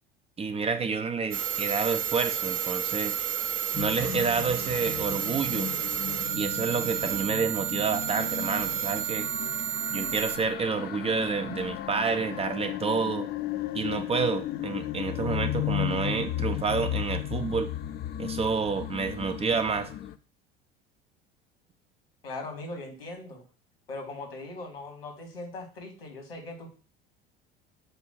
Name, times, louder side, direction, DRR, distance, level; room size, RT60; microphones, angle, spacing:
voice 1, 0.4-3.2 3.8-5.7 6.3-9.3 9.9-13.3 13.7-17.7 18.2-19.9, right 5 dB, 20° right, 8 dB, 0.6 m, -29 dB
sound 1, 1.3-10.4, right 11 dB, 50° right, 1.1 m, -31 dB
sound 2, 3.7-20.1, left 13 dB, 35° left, 0.5 m, -35 dB
voice 2, 22.2-23.4 23.9-26.8, left 2 dB, 75° left, 2 dB, 2.0 m, -40 dB
7.7 x 2.6 x 5.9 m, 0.36 s
figure-of-eight pair, 70°, 30 cm